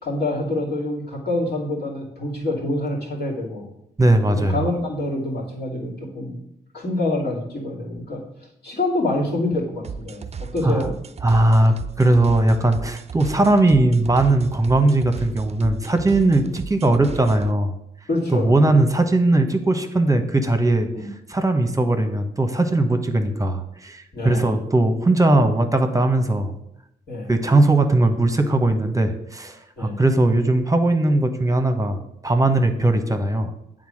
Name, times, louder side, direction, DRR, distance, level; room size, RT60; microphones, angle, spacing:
voice 1, 0.0-3.6 4.3-6.4 6.7-8.2 8.6-10.9 18.1-18.7 20.9-21.1 24.1-24.5 27.1-27.3 29.8-30.0, left 2 dB, 65° left, -4 dB, 2.7 m, -26 dB
voice 2, 4.0-4.7 10.6-10.8 11.2-17.8 18.3-20.9 21.3-26.5 27.3-33.5, right 2 dB, 20° right, 7 dB, 1.0 m, -19 dB
sound 1, 9.8-17.5, right 6 dB, 35° right, 0.5 m, -35 dB
8.2 x 3.9 x 6.4 m, 0.77 s
cardioid pair, 55°, 18 cm